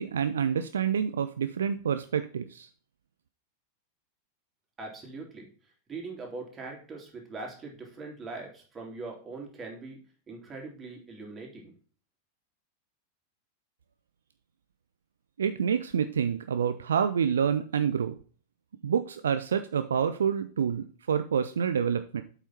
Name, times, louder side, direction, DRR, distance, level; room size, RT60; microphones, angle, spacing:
voice 1, 0.0-2.7 15.4-18.1 18.8-22.2, right 7 dB, 65° right, 10 dB, 0.5 m, -28 dB
voice 2, 4.8-5.5 5.9-10.0 10.3-11.7, right 3 dB, 20° right, -1 dB, 3.3 m, -41 dB
8.1 x 5.6 x 4.4 m, 0.41 s
figure-of-eight pair, 90°, 0 cm